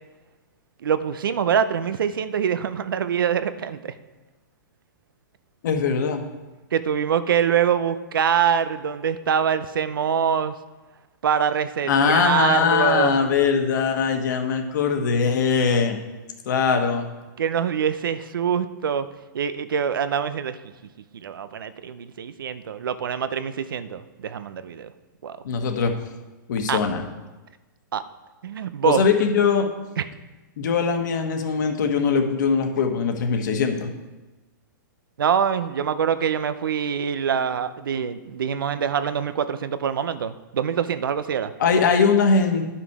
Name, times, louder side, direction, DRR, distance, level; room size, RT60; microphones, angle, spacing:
voice 1, 0.8-3.9 6.7-10.5 11.2-13.1 17.4-19.1 19.3-20.6 21.2-24.9 25.2-25.4 26.7-26.8 27.9-28.0 28.4-29.0 30.0-30.1 35.2-41.5, right 7 dB, 90° right, 13 dB, 0.6 m, -24 dB
voice 2, 5.6-6.2 11.9-16.0 16.4-17.1 25.4-25.9 26.5-27.1 28.8-29.7 30.6-33.9 41.6-42.6, left 5 dB, 60° left, 5 dB, 1.3 m, -21 dB
10.0 x 5.8 x 4.7 m, 1.2 s
hypercardioid pair, 160°, 11 cm